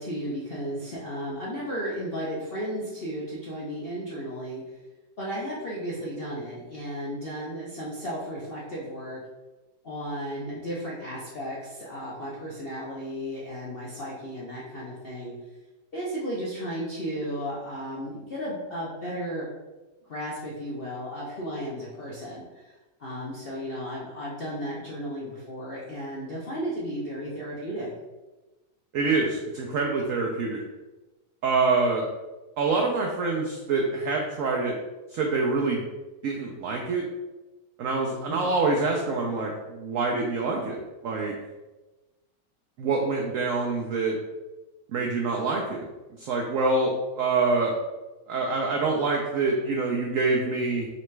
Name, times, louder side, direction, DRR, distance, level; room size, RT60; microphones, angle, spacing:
voice 1, 0.0-4.6 5.2-9.2 9.8-15.3 15.9-19.4 20.1-27.9 38.3-38.6, equal, 65° left, -6 dB, 0.5 m, -34 dB
voice 2, 28.9-30.6 31.4-32.1 32.6-34.8 35.1-35.8 36.2-37.1 37.8-41.3 42.8-44.2 44.9-45.9 46.2-47.8 48.3-50.9, right 3 dB, 85° right, 0 dB, 0.7 m, -26 dB
4.0 x 3.3 x 3.1 m, 1.1 s
omnidirectional pair, 1.9 m